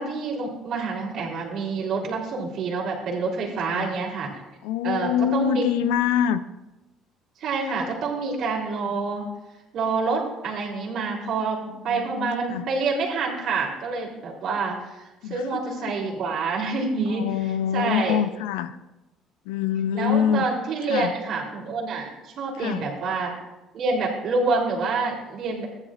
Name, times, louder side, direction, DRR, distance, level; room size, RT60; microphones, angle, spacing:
voice 1, 0.0-4.4 4.8-5.7 7.4-9.2 9.7-17.2 17.7-18.2 19.9-23.4 23.7-25.7, right 4 dB, 60° right, -2 dB, 3.4 m, -27 dB
voice 2, 4.6-6.4 11.7-12.6 15.2-15.9 17.1-18.8 19.5-20.5 20.9-21.1 22.6-22.9, left 9 dB, 85° left, 13 dB, 0.5 m, -25 dB
15.0 x 10.5 x 2.5 m, 1.0 s
supercardioid pair, 80°, 0 cm